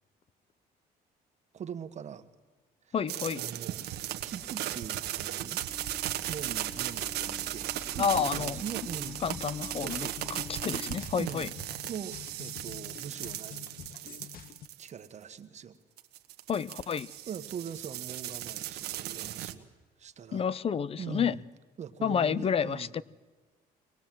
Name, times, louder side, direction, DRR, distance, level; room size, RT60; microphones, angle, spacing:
voice 1, 1.5-2.3 2.9-3.0 3.4-3.8 4.2-5.6 6.3-9.2 9.7-10.4 11.2-11.5 11.9-13.7 14.0-14.2 14.8-15.8 17.3-19.7 20.0-20.5 21.0-21.4 21.8-22.9, right 7 dB, 45° right, 1.4 m, -42 dB
voice 2, 2.9-3.4 8.0-8.6 9.2-10.1 10.5-11.5 16.5-17.1 20.3-21.4 22.0-23.0, left 7 dB, 35° left, 0.6 m, -29 dB
sound 1, 3.1-15.1 16.0-19.5, right 13 dB, 75° right, 1.3 m, -37 dB
sound 2, 5.7-10.7, left 3 dB, 5° left, 0.9 m, -48 dB
sound 3, 9.0-14.7, left 9 dB, 60° left, 1.2 m, -48 dB
23.5 x 20.0 x 7.6 m
cardioid pair, 110°, 17 cm